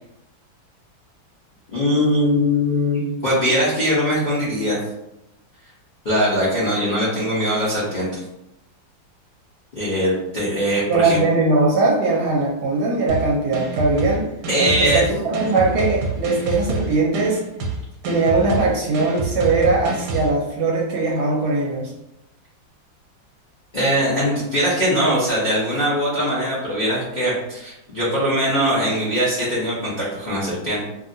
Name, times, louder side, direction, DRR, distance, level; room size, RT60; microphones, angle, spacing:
voice 1, 1.7-4.8 6.0-8.2 9.7-11.2 14.5-15.1 23.7-30.8, equal, 65° left, -9 dB, 0.4 m, -21 dB
voice 2, 10.9-14.2 14.6-17.4 18.0-21.9, right 3 dB, 70° right, -2 dB, 1.0 m, -20 dB
sound 1, 13.1-20.3, right 3 dB, 90° right, 1.3 m, -27 dB
2.8 x 2.6 x 2.6 m, 0.87 s
omnidirectional pair, 2.1 m